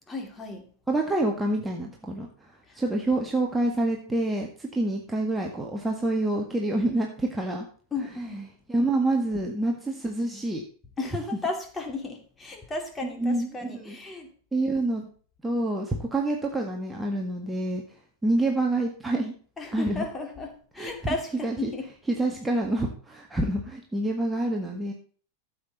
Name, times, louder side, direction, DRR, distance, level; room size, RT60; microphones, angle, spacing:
voice 1, 0.1-0.7 2.7-2.8 7.9-8.5 11.0-14.3 19.6-21.9, left 3 dB, 15° left, 4 dB, 2.6 m, -34 dB
voice 2, 0.9-2.3 2.8-7.7 8.7-10.6 13.2-14.0 14.5-15.0 15.4-17.8 18.2-19.3 19.7-20.0 20.8-20.9 21.4-21.7 22.1-24.9, right 2 dB, 10° right, 0 dB, 1.7 m, -27 dB
14.0 x 7.9 x 4.1 m, 0.43 s
figure-of-eight pair, 90°, 0 cm